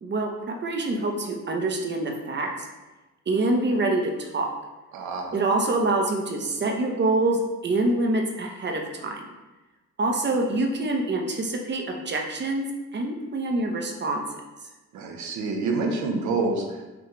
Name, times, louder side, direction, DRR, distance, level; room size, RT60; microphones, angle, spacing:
voice 1, 0.0-2.5 3.3-4.5 5.3-9.3 10.0-12.7 12.9-14.2, right 2 dB, 35° right, 2 dB, 0.8 m, -25 dB
voice 2, 4.9-5.4 14.9-16.8, right 3 dB, 75° right, 2 dB, 0.8 m, -27 dB
6.0 x 2.4 x 3.1 m, 1.1 s
cardioid pair, 90°, 30 cm